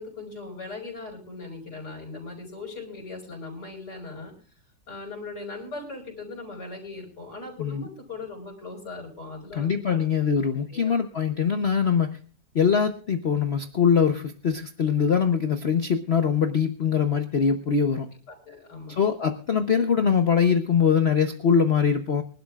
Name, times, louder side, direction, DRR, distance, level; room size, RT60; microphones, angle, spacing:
voice 1, 0.0-4.3 4.9-10.0 10.7-10.9 18.3-19.0, left 3 dB, 65° left, 2 dB, 5.8 m, -39 dB
voice 2, 9.5-12.2 12.5-18.1 18.9-22.2, left 6 dB, 45° left, 6 dB, 0.9 m, -23 dB
24.5 x 12.0 x 2.4 m, 0.40 s
omnidirectional pair, 2.0 m